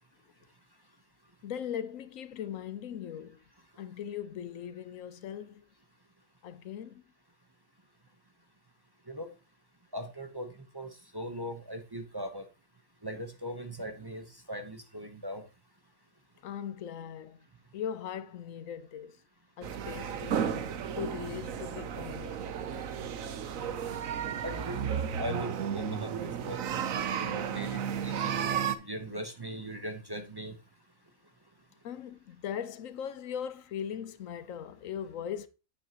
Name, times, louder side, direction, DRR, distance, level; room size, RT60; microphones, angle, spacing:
voice 1, 1.4-3.4 3.8-5.7 6.4-7.0 16.4-17.4 17.7-19.2 19.6-20.7 20.9-22.5 31.8-35.5, left 9 dB, 75° left, 1.1 m, -39 dB
voice 2, 9.9-12.4 13.0-15.4 24.4-26.6 27.1-28.3 28.8-30.6, equal, 20° right, 0.9 m, -40 dB
sound 1, 19.6-28.7, right 8 dB, 85° right, 1.2 m, -33 dB
9.1 x 8.3 x 2.9 m
omnidirectional pair, 1.4 m